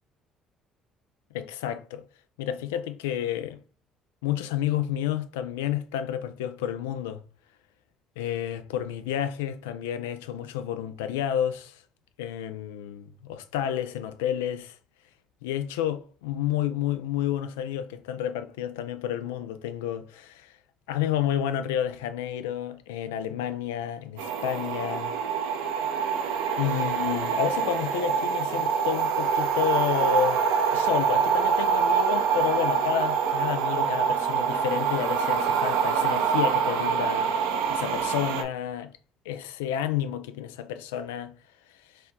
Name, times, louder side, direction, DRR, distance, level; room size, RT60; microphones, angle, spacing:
voice 1, 1.3-2.0 2.4-3.6 4.2-7.2 8.2-11.8 12.2-14.8 15.4-20.5 20.9-25.2 26.6-30.5 30.7-37.3 37.7-38.9 39.3-41.3, left 10 dB, 85° left, 0.3 m, -30 dB
sound 1, 24.2-38.4, right 6 dB, 85° right, 0.6 m, -25 dB
4.3 x 2.3 x 3.7 m
hypercardioid pair, 65°, 0 cm